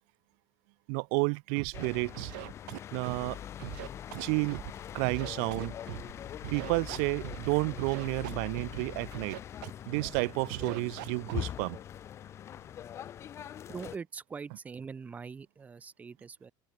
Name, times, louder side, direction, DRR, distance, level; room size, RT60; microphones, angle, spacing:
voice 1, 0.9-2.3 2.9-3.4 4.2-4.6 4.9-5.7 6.5-9.4 9.9-11.8, right 40 dB or more, 65° right, 0.5 m, -31 dB
Scratching (performance technique), 1.5-1.9 2.1-3.3 3.6-4.7 5.0-6.1 6.4-7.5 7.8-8.8 9.1-9.7 9.9-10.2 10.5-11.3, right 27 dB, 85° right, 2.3 m, -41 dB
sound 1, 1.7-14.0, left 10 dB, 25° left, 1.2 m, -42 dB
sound 2, 3.7-11.3, right 13 dB, 35° right, 6.7 m, -63 dB
voice 2, 13.7-16.5, right 5 dB, 15° right, 1.4 m, -42 dB
open air
cardioid pair, 175°, 10 cm